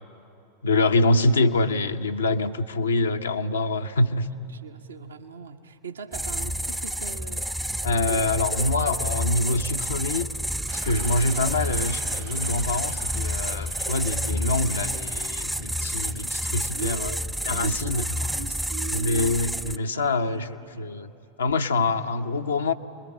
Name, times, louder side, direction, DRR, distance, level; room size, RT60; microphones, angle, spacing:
voice 1, 0.6-4.3 7.8-10.3 10.8-17.1 17.4-18.0 18.9-21.1 21.4-22.7, left 2 dB, 80° left, 6 dB, 0.7 m, -25 dB
voice 2, 4.5-7.4 8.0-8.3 8.9-9.0 10.9-11.2 16.7-17.3 17.6-19.3 19.9-20.5 20.7-21.0, right 8 dB, 75° right, 6 dB, 0.9 m, -39 dB
sound 1, 6.1-19.8, equal, 5° right, 0.5 m, -29 dB
sound 2, 10.7-17.1, right 12 dB, 55° right, 1.2 m, -46 dB
26.5 x 22.0 x 8.8 m, 2.7 s
figure-of-eight pair, 85°, 0 cm